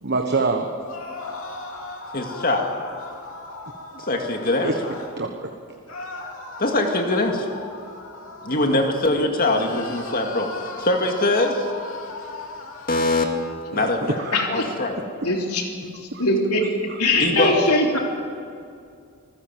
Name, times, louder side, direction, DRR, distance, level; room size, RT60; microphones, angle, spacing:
voice 1, 0.0-0.7 4.6-4.7 5.2-5.5 13.7-14.4 16.1-16.2, right 3 dB, 50° right, 3 dB, 1.3 m, -25 dB
sound 1, 0.8-5.1 5.9-9.0 9.4-13.3, left 3 dB, 65° left, 3.1 m, -37 dB
voice 2, 2.1-2.8 3.9-4.7 6.6-7.5 8.4-11.6 12.9-13.3 13.7-14.2 14.5-15.0 17.2-17.6, left 2 dB, 40° left, 3 dB, 2.2 m, -22 dB
voice 3, 14.3-14.6 15.2-16.7 17.0-18.0, left 2 dB, 90° left, 1 dB, 3.7 m, -22 dB
26.0 x 15.5 x 7.6 m, 2.3 s
head